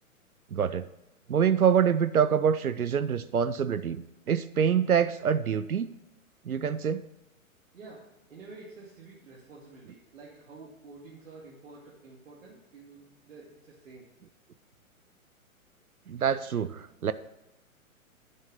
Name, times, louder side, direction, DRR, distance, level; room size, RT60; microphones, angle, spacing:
voice 1, 0.5-0.9 1.3-5.9 6.4-7.0 16.1-17.1, right 7 dB, 85° right, 14 dB, 0.6 m, -26 dB
voice 2, 7.7-14.1, right 3 dB, 65° right, -5 dB, 2.5 m, -49 dB
10.0 x 5.5 x 6.5 m, 0.92 s
figure-of-eight pair, 115°, 42 cm